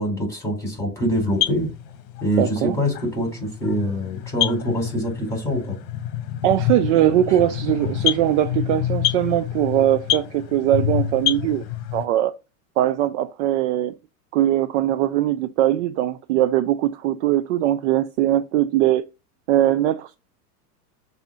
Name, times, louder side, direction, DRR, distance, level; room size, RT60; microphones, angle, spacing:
voice 1, 0.0-1.7 2.2-5.8 7.3-7.4, equal, 5° left, 4.3 m, -24 dB
sound 1, 1.1-12.1, left 11 dB, 50° left, 1.0 m, -27 dB
voice 2, 2.4-2.8 6.4-11.6 11.9-12.3 12.8-13.9 14.3-19.0 19.5-20.2, right 12 dB, 50° right, 0.5 m, -21 dB
7.0 x 2.8 x 5.5 m
hypercardioid pair, 130°, 48 cm